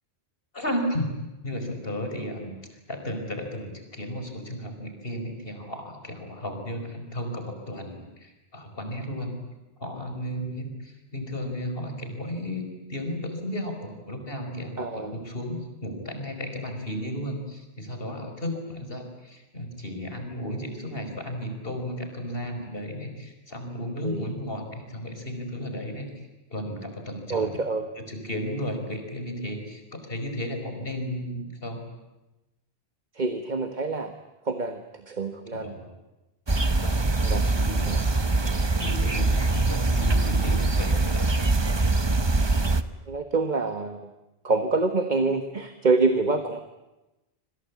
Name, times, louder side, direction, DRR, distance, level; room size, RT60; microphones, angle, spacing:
voice 1, 0.5-1.2 1.4-2.6 2.9-9.4 9.8-27.6 28.0-31.8 35.5-35.9 36.6-37.0 37.4-38.0 38.8-41.3, equal, 60° left, 5 dB, 5.2 m, -34 dB
voice 2, 14.8-15.1 24.0-24.3 27.3-27.8 33.1-34.1 34.5-35.7 37.2-37.5 37.9-38.0 43.1-44.1 44.4-46.6, right 3 dB, 45° right, 7 dB, 1.6 m, -26 dB
sound 1, 36.5-42.8, right 2 dB, 25° right, 1.1 m, -23 dB
26.5 x 26.0 x 8.5 m, 1.0 s
omnidirectional pair, 1.1 m